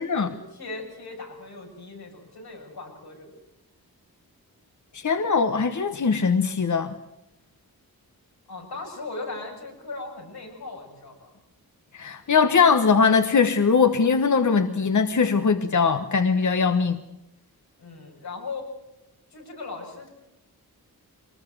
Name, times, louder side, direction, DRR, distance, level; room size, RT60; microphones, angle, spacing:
voice 1, 0.0-3.4 8.5-11.3 17.8-18.6 19.3-20.1, left 3 dB, 90° left, -1 dB, 7.0 m, -38 dB
voice 2, 4.9-6.9 11.9-17.0, left 5 dB, 50° left, 8 dB, 1.2 m, -21 dB
22.5 x 20.5 x 7.8 m, 0.89 s
cardioid pair, 70°, 37 cm